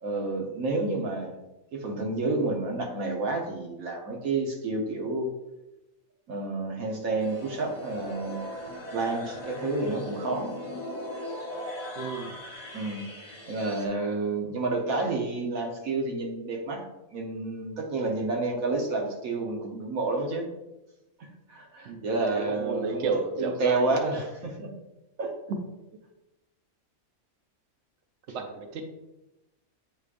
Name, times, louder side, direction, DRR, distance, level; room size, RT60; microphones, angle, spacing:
voice 1, 0.0-1.3 1.7-5.3 6.3-8.4 8.9-10.5 12.7-13.1 13.5-16.9 17.1-20.5 21.2-23.1 23.4-24.7 25.2-25.3, right 3 dB, 90° right, 1 dB, 1.4 m, -30 dB
sound 1, 7.2-13.9, left 1 dB, 30° left, 1.4 m, -39 dB
voice 2, 12.0-12.4 21.9-22.0 22.3-24.0 25.5-25.6 28.3-28.9, right 4 dB, 60° right, 5 dB, 0.9 m, -32 dB
8.1 x 4.8 x 2.5 m, 0.99 s
omnidirectional pair, 1.4 m